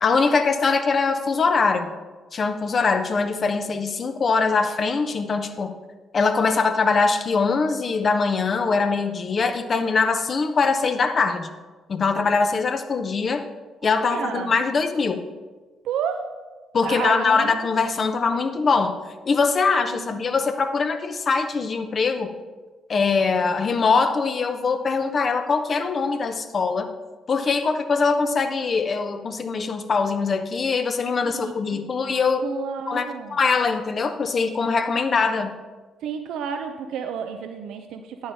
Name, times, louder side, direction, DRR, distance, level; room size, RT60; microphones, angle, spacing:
voice 1, 0.0-1.9 2.3-5.7 6.1-11.5 11.9-13.5 13.8-15.3 16.7-19.0 19.2-22.3 22.9-26.9 27.3-32.4 32.9-35.5, left 4 dB, 45° left, 8 dB, 0.8 m, -22 dB
voice 2, 13.8-14.5 15.8-16.3 16.8-17.7 19.9-20.2 31.2-31.8 32.4-33.4 36.0-38.3, right 7 dB, 70° right, 6 dB, 0.5 m, -31 dB
9.8 x 8.7 x 3.5 m, 1.3 s
hypercardioid pair, 45°, 0 cm